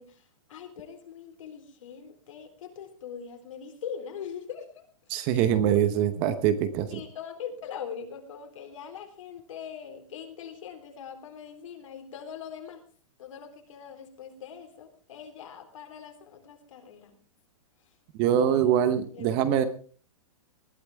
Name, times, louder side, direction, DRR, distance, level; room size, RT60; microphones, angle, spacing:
voice 1, 0.0-4.9 5.3-5.5 6.9-12.8 13.2-17.2 18.3-18.8 19.1-19.3, left 7 dB, 65° left, 5 dB, 3.7 m, -42 dB
voice 2, 5.1-7.0 18.1-19.6, right 10 dB, 25° right, 12 dB, 0.9 m, -24 dB
20.0 x 12.0 x 3.5 m, 0.40 s
hypercardioid pair, 170°, 18 cm